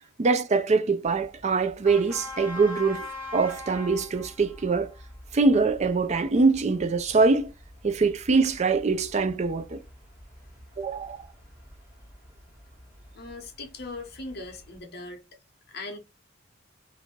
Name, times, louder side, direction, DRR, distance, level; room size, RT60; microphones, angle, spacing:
voice 1, 0.2-4.9 5.3-7.5 7.8-9.8 10.8-11.3, right 4 dB, 35° right, 0.4 m, -23 dB
sound 1, 1.0-14.8, left 2 dB, 10° right, 1.5 m, -44 dB
voice 2, 13.1-15.2 15.7-16.0, left 2 dB, 50° left, 1.0 m, -39 dB
2.9 x 2.6 x 4.3 m
head